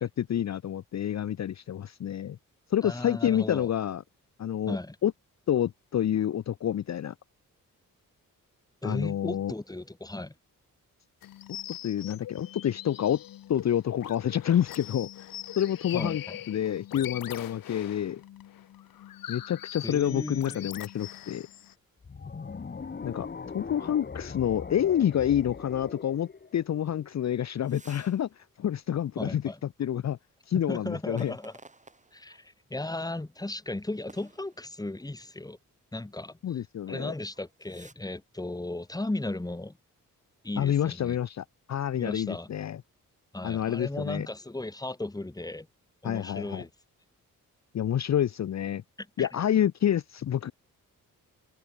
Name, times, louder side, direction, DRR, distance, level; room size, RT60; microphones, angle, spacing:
voice 1, 0.0-2.4 2.7-4.0 4.4-4.8 5.0-5.1 5.5-7.1 8.8-9.5 11.8-13.2 13.5-15.3 15.6-18.2 19.3-21.5 23.0-23.3 23.5-29.4 29.8-30.2 30.5-31.3 36.4-37.1 40.6-42.8 43.4-44.3 46.0-46.6 47.7-48.8 49.2-50.5, left 10 dB, 55° left, 0.6 m, -28 dB
voice 2, 2.8-3.7 4.7-5.0 8.8-10.3 15.9-16.4 19.8-20.7 29.2-29.6 30.5-31.6 32.1-35.6 35.9-36.6 36.9-39.8 40.4-41.2 42.0-42.5 43.3-45.7 46.0-46.7 49.2-49.3, left 2 dB, 10° left, 1.5 m, -36 dB
sound 1, 11.2-21.7, left 12 dB, 85° left, 0.9 m, -42 dB
sound 2, 22.0-27.3, left 5 dB, 30° left, 1.0 m, -40 dB
sound 3, 27.6-28.2 28.6-28.7 31.1-32.5 33.1-33.3 34.1-34.9 36.7-37.0 37.3-37.9, right 3 dB, 20° right, 2.8 m, -54 dB
cardioid pair, 80°, 34 cm